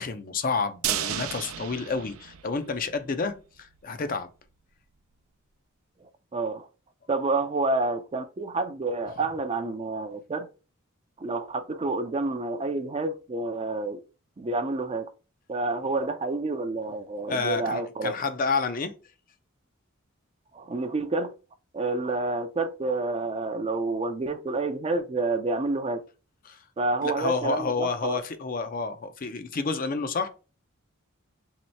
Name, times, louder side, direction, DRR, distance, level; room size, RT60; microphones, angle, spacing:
voice 1, 0.0-4.3 17.3-18.9 26.4-26.6 27.0-30.3, left 4 dB, 40° left, 0.5 m, -29 dB
sound 1, 0.8-3.0 3.3-3.4 3.7-3.8, right 10 dB, 90° right, 0.5 m, -32 dB
voice 2, 6.0-6.7 7.1-10.5 11.2-14.0 14.4-15.1 15.5-18.1 20.5-21.3 21.7-26.0 26.8-28.2, right 3 dB, 30° right, 0.4 m, -29 dB
3.1 x 2.9 x 4.3 m
head